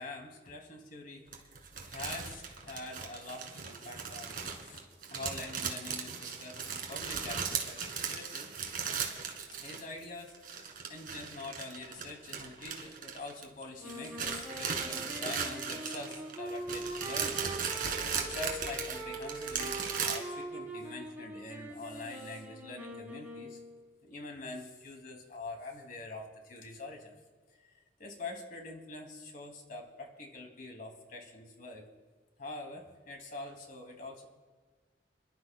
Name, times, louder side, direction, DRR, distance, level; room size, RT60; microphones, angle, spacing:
voice 1, 0.0-4.8 5.1-8.5 9.6-23.6 24.0-27.2 27.6-31.9 32.4-34.3, left 2 dB, 50° left, 2 dB, 2.3 m, -45 dB
sound 1, 1.3-10.0 10.3-13.6 13.9-20.2, right 6 dB, 50° right, 1.8 m, -37 dB
sound 2, 13.8-23.8, right 2 dB, 10° right, 2.9 m, -42 dB
30.0 x 12.0 x 2.2 m, 1.4 s
head